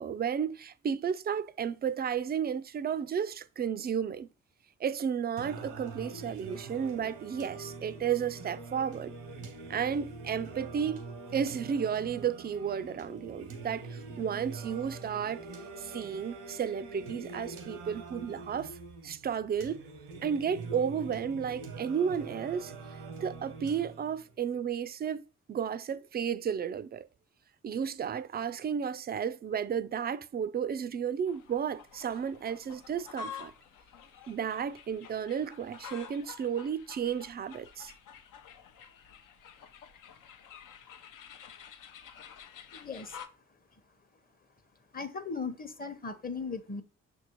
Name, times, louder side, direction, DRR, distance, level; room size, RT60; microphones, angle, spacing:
voice 1, 0.0-4.3 4.8-9.2 9.7-11.0 11.3-15.4 15.8-18.8 19.0-19.8 20.2-22.7 23.2-25.2 25.5-27.1 27.6-33.5 34.3-37.9, right 7 dB, 30° right, 0.4 m, -33 dB
Singing, 5.4-24.4, right 3 dB, 85° right, 0.9 m, -44 dB
sound 1, 31.3-43.3, left 7 dB, 65° left, 0.7 m, -49 dB
voice 2, 42.7-43.2 44.9-46.8, left 4 dB, 25° left, 0.8 m, -37 dB
6.0 x 2.7 x 2.9 m
hypercardioid pair, 45°, 34 cm